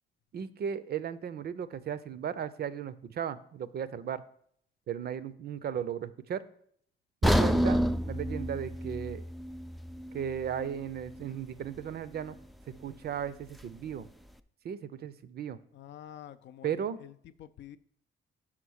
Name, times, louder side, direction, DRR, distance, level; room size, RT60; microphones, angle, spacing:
voice 1, 0.3-4.2 4.9-6.4 7.2-9.2 10.1-12.3 12.7-14.1 14.6-15.6 16.6-17.0, right 8 dB, 55° right, 0.5 m, -36 dB
sound 1, 7.2-11.3 11.6-11.8 12.4-12.5, equal, ahead, 0.3 m, -29 dB
voice 2, 15.7-17.8, left 10 dB, 65° left, 0.5 m, -48 dB
5.8 x 4.8 x 6.3 m
cardioid pair, 90°, 20 cm